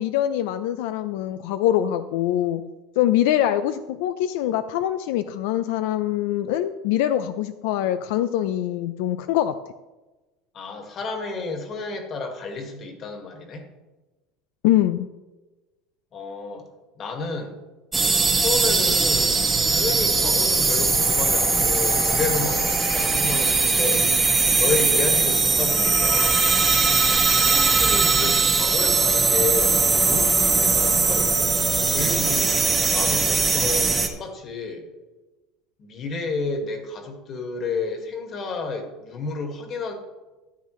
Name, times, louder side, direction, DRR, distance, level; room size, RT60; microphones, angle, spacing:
voice 1, 0.0-2.6 3.0-9.5 14.6-15.1, left 12 dB, 80° left, 11 dB, 0.4 m, -23 dB
voice 2, 10.5-13.6 16.1-16.7 17.0-17.6 18.4-19.4 19.7-24.1 24.6-27.0 27.4-31.6 31.9-34.8 35.8-39.9, left 4 dB, 35° left, 4 dB, 1.9 m, -31 dB
sound 1, 17.9-34.1, right 4 dB, 15° right, 1.1 m, -20 dB
13.0 x 9.2 x 3.2 m, 1.1 s
cardioid pair, 145°, 0 cm